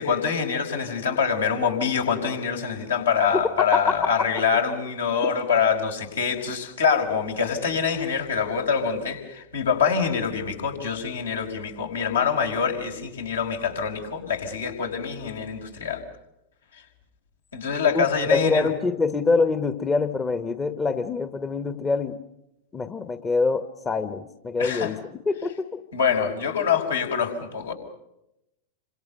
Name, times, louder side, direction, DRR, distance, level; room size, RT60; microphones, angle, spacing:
voice 1, 0.0-16.0 16.7-16.8 17.5-18.7 24.6-24.9 25.9-27.7, left 6 dB, 70° left, 2 dB, 5.5 m, -25 dB
voice 2, 3.6-4.1 17.9-22.2 22.7-25.8, left 4 dB, 15° left, 11 dB, 1.3 m, -25 dB
28.0 x 26.5 x 6.7 m, 0.86 s
figure-of-eight pair, 90°, 0 cm